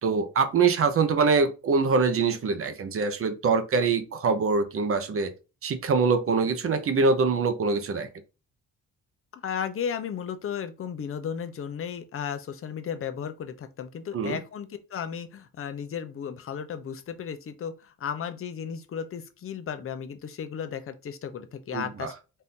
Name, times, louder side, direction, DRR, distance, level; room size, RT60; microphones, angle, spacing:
voice 1, 0.0-5.3 5.6-8.1 14.1-14.4 21.7-22.1, right 4 dB, 45° right, 0.7 m, -24 dB
voice 2, 9.3-22.1, left 7 dB, 40° left, 0.6 m, -34 dB
4.2 x 2.6 x 3.6 m
cardioid pair, 130°, 33 cm